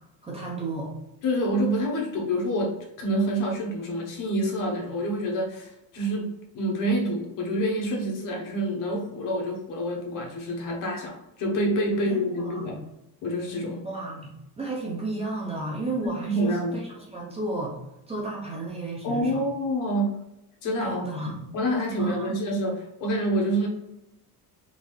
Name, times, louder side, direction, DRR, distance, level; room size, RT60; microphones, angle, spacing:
voice 1, 0.2-0.9 12.1-12.8 13.8-17.8 18.1-19.5 20.8-21.5 22.0-22.4, right 2 dB, 15° right, -4 dB, 0.5 m, -33 dB
voice 2, 1.2-12.8 13.2-13.8 16.0-16.8 19.0-20.2 20.6-21.0 21.5-23.7, equal, 50° left, 0 dB, 1.0 m, -27 dB
3.8 x 2.7 x 3.0 m, 0.89 s
cardioid pair, 180°, 40 cm